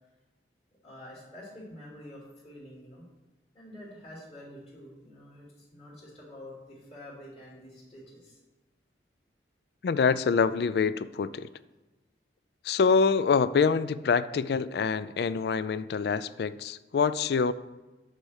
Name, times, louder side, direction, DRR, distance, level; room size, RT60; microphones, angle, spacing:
voice 1, 0.8-3.0 3.5-8.4, left 1 dB, 35° left, -5 dB, 2.9 m, -47 dB
voice 2, 9.8-11.5 12.6-17.5, left 5 dB, 60° left, 15 dB, 0.3 m, -25 dB
8.0 x 4.2 x 6.4 m, 1.1 s
head